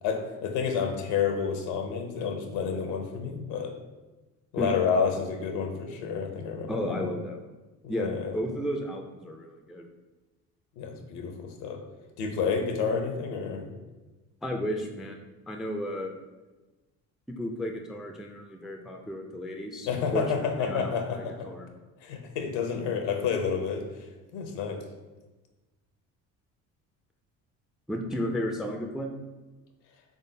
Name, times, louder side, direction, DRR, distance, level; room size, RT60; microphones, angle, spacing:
voice 1, 0.0-3.7 4.5-7.1 7.8-8.3 10.8-11.8 12.2-13.7 19.8-21.5 22.0-23.8 24.3-24.8, left 6 dB, 70° left, 4 dB, 0.7 m, -29 dB
voice 2, 6.7-7.4 7.9-9.9 14.4-16.1 17.3-20.2 20.6-21.7 27.9-29.1, equal, ahead, 3 dB, 0.3 m, -33 dB
3.7 x 3.5 x 2.7 m, 1.2 s
hypercardioid pair, 55°, 44 cm